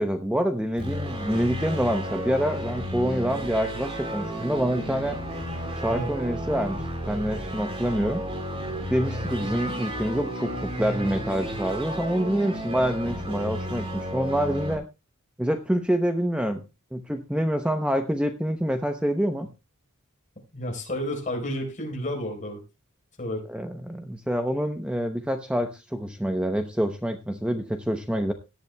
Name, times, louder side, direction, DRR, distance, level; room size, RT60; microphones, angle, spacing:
voice 1, 0.0-5.2 5.8-6.8 7.1-8.2 8.9-14.8 15.4-16.6 16.9-19.5 23.5-28.3, equal, 5° right, 6 dB, 0.8 m, -26 dB
sound 1, 0.8-14.8, equal, 25° right, 3.2 m, -33 dB
voice 2, 20.5-22.6 23.2-23.4, left 1 dB, 35° left, 2 dB, 4.0 m, -31 dB
17.5 x 11.0 x 2.2 m, 0.28 s
head